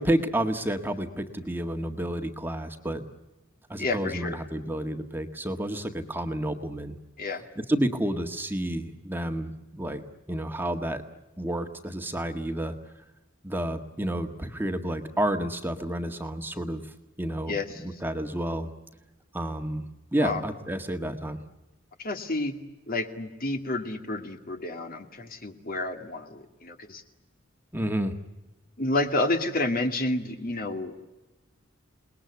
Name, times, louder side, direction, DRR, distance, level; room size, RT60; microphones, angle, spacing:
voice 1, 0.0-3.0 3.7-7.0 7.7-10.0 10.3-11.0 11.4-12.7 13.4-16.8 17.2-17.5 17.8-18.7 19.3-19.8 20.1-21.4 27.7-28.1, right 1 dB, 10° right, 5 dB, 1.7 m, -30 dB
voice 2, 3.8-4.4 7.2-7.5 17.5-17.8 20.2-20.4 22.0-22.6 22.9-27.0 28.8-31.1, left 2 dB, 45° left, 5 dB, 2.3 m, -30 dB
29.0 x 20.5 x 9.6 m, 1.1 s
head